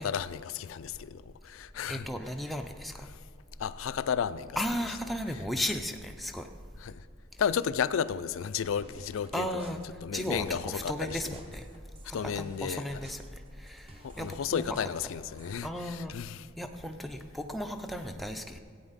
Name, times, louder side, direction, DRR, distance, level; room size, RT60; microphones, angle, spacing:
voice 1, 0.0-2.0 3.6-4.6 6.8-7.0 7.4-9.7 10.0-11.3 12.1-13.0 14.0-16.5, left 7 dB, 70° left, 15 dB, 0.4 m, -33 dB
voice 2, 1.9-3.1 4.6-6.5 9.3-9.8 10.1-11.7 12.0-13.2 13.6-14.8 15.6-16.1 16.6-18.6, equal, ahead, 4 dB, 0.5 m, -35 dB
sound 1, 8.7-15.6, right 1 dB, 25° right, 0.8 m, -54 dB
14.5 x 8.8 x 4.0 m, 2.3 s
head